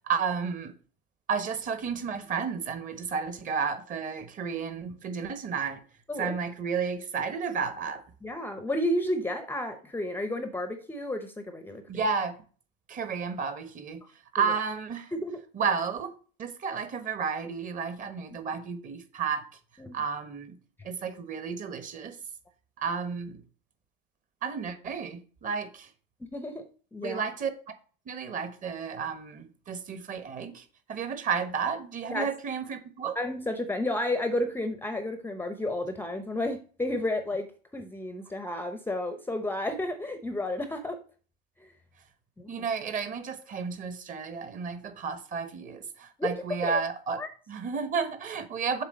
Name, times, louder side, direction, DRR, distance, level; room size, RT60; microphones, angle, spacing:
voice 1, 0.0-0.7 1.3-5.8 6.2-8.0 11.9-12.3 12.9-14.0 14.3-15.1 15.5-16.1 16.4-19.4 19.9-20.6 20.8-22.2 22.8-23.4 24.4-25.9 27.0-27.5 28.1-33.2 42.5-47.2 47.5-48.8, right 6 dB, 25° right, 1.2 m, -32 dB
voice 2, 8.2-12.0 14.0-14.1 14.4-14.5 15.1-15.4 19.8-20.0 26.2-26.6 26.9-27.2 32.1-32.3 33.1-41.0 41.6-41.7 42.4-42.7 46.2-46.3 46.6-46.8 47.2-47.3, left 1 dB, 5° left, 0.7 m, -32 dB
7.4 x 3.7 x 6.3 m
supercardioid pair, 125°, 29 cm